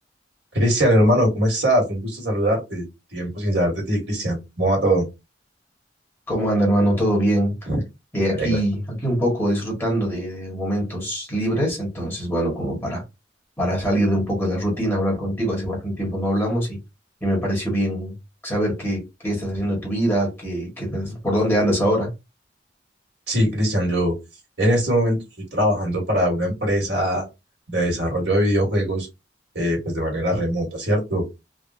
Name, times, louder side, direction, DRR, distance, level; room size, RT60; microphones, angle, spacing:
voice 1, 0.5-2.8 3.1-5.0 7.7-7.8 8.3-8.6 23.3-24.2 24.6-25.2 25.5-27.2 27.7-29.1 29.5-31.3, equal, 70° right, 1.7 m, -21 dB
voice 2, 6.3-7.6 8.1-13.0 13.6-16.8 17.2-18.1 18.4-22.1, equal, 15° left, 1.4 m, -23 dB
3.5 x 2.3 x 2.6 m
head